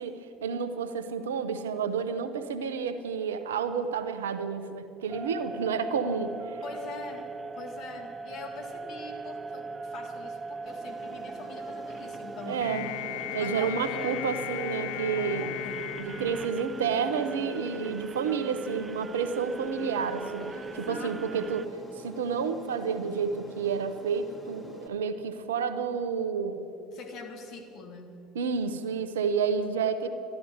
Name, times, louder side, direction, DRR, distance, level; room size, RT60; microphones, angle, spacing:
voice 1, 0.0-6.6 12.4-12.9 13.3-15.5 16.0-21.7 22.0-26.6 28.3-30.1, right 6 dB, 80° right, 10 dB, 0.8 m, -30 dB
sound 1, 5.1-21.7, right 4 dB, 30° right, 0.4 m, -40 dB
voice 2, 6.6-7.3 7.5-12.6 13.3-14.2 15.2-16.0 20.4-21.5 26.9-28.2, left 4 dB, 60° left, 4 dB, 2.1 m, -43 dB
Aircraft, 10.7-24.9, left 2 dB, 20° left, 2.0 m, -48 dB
sound 2, 12.6-17.1, left 16 dB, 75° left, 0.3 m, -37 dB
13.0 x 11.0 x 7.9 m, 2.6 s
hypercardioid pair, 65°, 0 cm